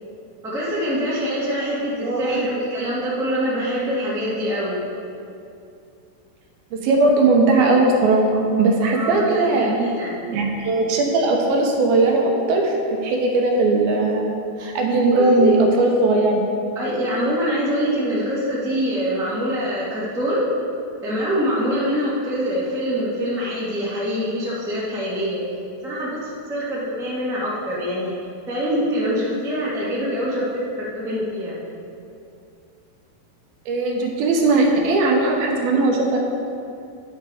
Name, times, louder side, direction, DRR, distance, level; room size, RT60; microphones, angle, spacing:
voice 1, 0.4-4.8 8.9-10.2 15.1-15.6 16.7-20.5 21.0-25.4 25.8-28.1 28.5-31.5, equal, 5° right, -8 dB, 0.3 m, -24 dB
voice 2, 2.0-2.5 6.7-9.7 10.3-12.8 13.0-14.3 14.6-16.4 33.7-36.2, right 2 dB, 75° right, 0 dB, 2.8 m, -18 dB
10.0 x 6.6 x 4.9 m, 2.5 s
omnidirectional pair, 4.5 m